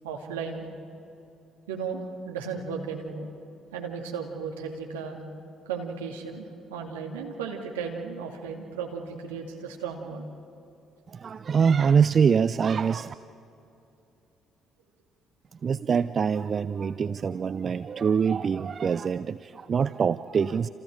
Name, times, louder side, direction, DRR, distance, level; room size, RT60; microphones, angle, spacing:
voice 1, 0.0-0.7 1.7-3.3 3.7-5.2 5.7-10.3, right 5 dB, 75° right, 1 dB, 2.5 m, -35 dB
voice 2, 11.1-13.1 15.6-20.7, right 6 dB, 40° right, 15 dB, 0.5 m, -24 dB
29.0 x 28.5 x 5.0 m, 2.7 s
figure-of-eight pair, 45°, 0 cm